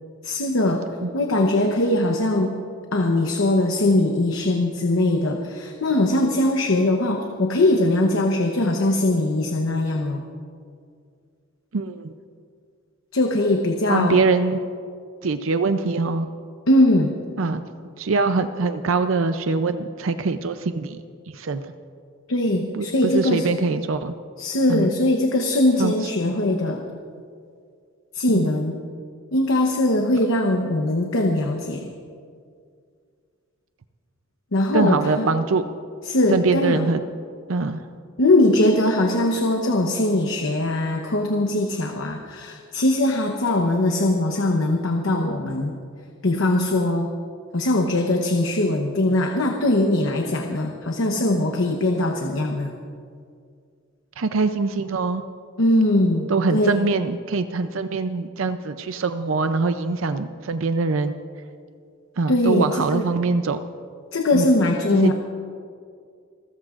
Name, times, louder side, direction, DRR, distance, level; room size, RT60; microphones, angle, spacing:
voice 1, 0.2-0.8 1.1-2.6 2.9-10.2 13.1-14.2 16.7-17.1 22.3-23.5 24.4-26.8 28.1-28.8 29.3-31.9 34.5-35.3 36.1-36.9 38.2-45.7 46.2-47.1 47.5-52.7 55.6-56.9 62.3-63.0 64.1-65.1, left 1 dB, 90° left, 3 dB, 1.0 m, -21 dB
voice 2, 11.7-12.1 13.9-14.6 15.2-16.3 17.4-17.6 18.0-21.0 21.3-21.7 22.7-24.1 24.7-24.9 25.8-25.9 28.3-28.5 34.7-35.6 36.3-37.0 37.5-37.8 54.2-55.2 56.3-61.2 62.2-63.6 64.3-64.5 65.0-65.1, right 4 dB, 80° right, 10 dB, 0.5 m, -23 dB
29.0 x 14.0 x 2.5 m, 2.2 s
head